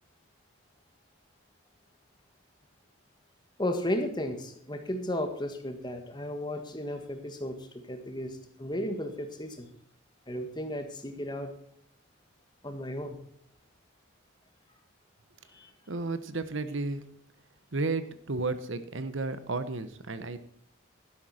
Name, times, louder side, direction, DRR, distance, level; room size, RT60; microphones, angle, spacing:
voice 1, 3.6-9.7 10.3-11.5 12.6-13.2 15.5-15.7, left 1 dB, 20° left, 6 dB, 1.5 m, -34 dB
voice 2, 15.9-17.0 17.7-20.4, right 3 dB, 65° right, 12 dB, 1.0 m, -33 dB
12.0 x 11.5 x 4.3 m, 0.67 s
head